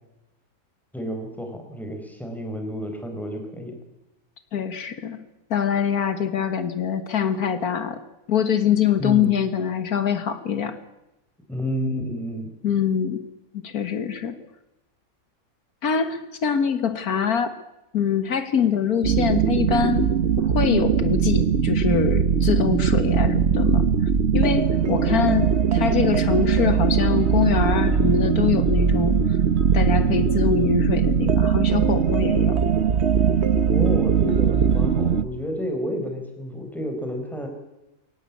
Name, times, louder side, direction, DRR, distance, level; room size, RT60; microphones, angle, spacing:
voice 1, 0.9-3.7 9.0-9.3 11.5-12.5 25.1-25.2 33.7-37.5, equal, ahead, 4 dB, 4.5 m, -30 dB
voice 2, 4.5-5.2 5.5-8.0 8.3-10.8 12.6-13.3 13.5-14.4 15.8-17.5 17.9-23.9 24.3-29.4 29.7-32.6, left 7 dB, 85° left, 10 dB, 1.9 m, -24 dB
sound 1, 19.0-35.2, right 7 dB, 50° right, 1.2 m, -20 dB
22.5 x 18.5 x 8.4 m, 0.92 s
omnidirectional pair, 1.5 m